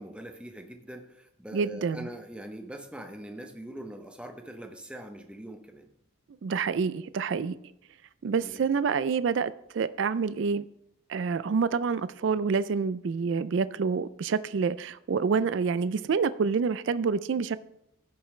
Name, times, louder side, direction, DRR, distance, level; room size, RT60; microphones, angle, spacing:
voice 1, 0.0-5.9 8.4-8.6, right 1 dB, 5° right, 0.8 m, -43 dB
voice 2, 1.5-2.1 6.4-7.5 8.2-10.6 11.1-17.6, right 5 dB, 65° right, 0.4 m, -27 dB
15.5 x 6.9 x 3.2 m
head